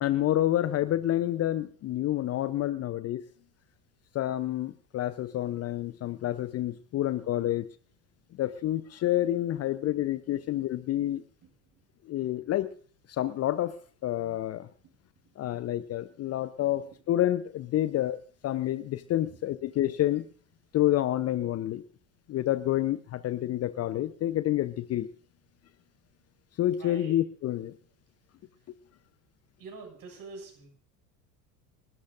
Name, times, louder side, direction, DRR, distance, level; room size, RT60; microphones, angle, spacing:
voice 1, 0.0-3.2 4.1-7.7 8.4-11.2 12.1-12.7 13.1-14.7 15.4-20.3 20.7-21.8 22.3-25.1 26.6-27.7, left 13 dB, 30° left, 14 dB, 0.7 m, -28 dB
voice 2, 11.4-11.8 14.8-15.4 16.7-17.0 19.2-19.4 26.8-27.3 28.4-28.7 29.6-30.7, right 3 dB, 40° right, 3 dB, 7.0 m, -48 dB
29.5 x 13.0 x 2.5 m, 0.44 s
figure-of-eight pair, 70°, 49 cm